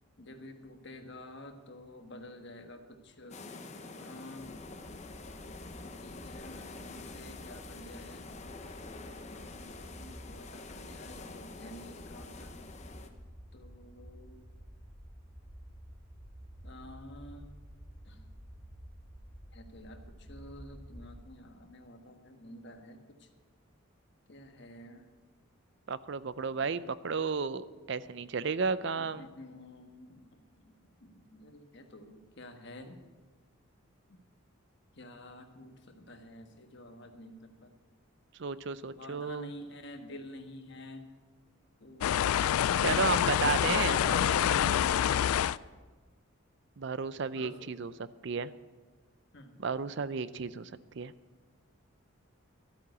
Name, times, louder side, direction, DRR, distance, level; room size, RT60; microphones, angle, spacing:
voice 1, 0.2-3.4 4.0-4.5 6.0-8.2 9.4-12.5 13.5-14.4 16.6-17.5 18.1-18.3 19.5-20.0 20.3-23.0 24.3-25.0 29.0-30.8 31.0-33.0 34.1-34.2 35.0-37.7 38.9-41.0 41.8-42.4 43.6-45.1 47.3-47.6 49.3-49.5, left 2 dB, 55° left, 5 dB, 1.4 m, -46 dB
sound 1, 3.3-13.1, left 3 dB, 30° left, 0.8 m, -47 dB
sound 2, 4.4-21.2, equal, 40° right, 3.3 m, -51 dB
voice 2, 25.9-29.3 38.4-39.5 42.8-44.0 46.8-47.9 48.2-48.5 49.6-50.7 51.0-51.1, right 5 dB, 55° right, 16 dB, 0.5 m, -33 dB
sound 3, 42.0-45.6, left 10 dB, 85° left, 0.3 m, -27 dB
13.0 x 8.7 x 8.2 m, 1.3 s
head